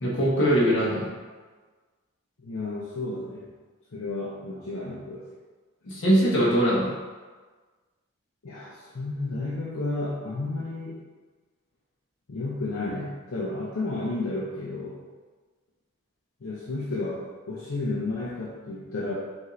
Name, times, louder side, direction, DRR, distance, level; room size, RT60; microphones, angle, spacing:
voice 1, 0.0-1.1 5.9-6.9, equal, 60° left, -5 dB, 1.1 m, -22 dB
voice 2, 2.4-3.5 3.9-5.3 8.4-11.0 12.3-15.0 16.4-19.1, left 2 dB, 75° left, -6 dB, 0.6 m, -32 dB
5.1 x 2.6 x 3.1 m, 1.4 s
head